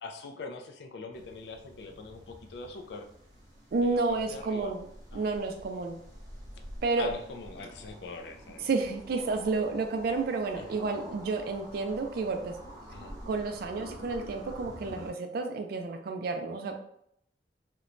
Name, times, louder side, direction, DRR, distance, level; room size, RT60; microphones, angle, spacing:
voice 1, 0.0-3.1 3.8-4.7 5.1-5.3 7.0-8.7 10.6-10.7 12.9-13.1, left 3 dB, 65° left, 4 dB, 0.4 m, -43 dB
sound 1, 1.1-15.1, right 1 dB, 20° right, 0.8 m, -48 dB
voice 2, 3.7-4.9 5.1-6.0 6.8-7.1 8.6-12.6 13.3-16.8, right 3 dB, 55° right, 5 dB, 0.4 m, -30 dB
3.0 x 2.1 x 2.5 m, 0.70 s
head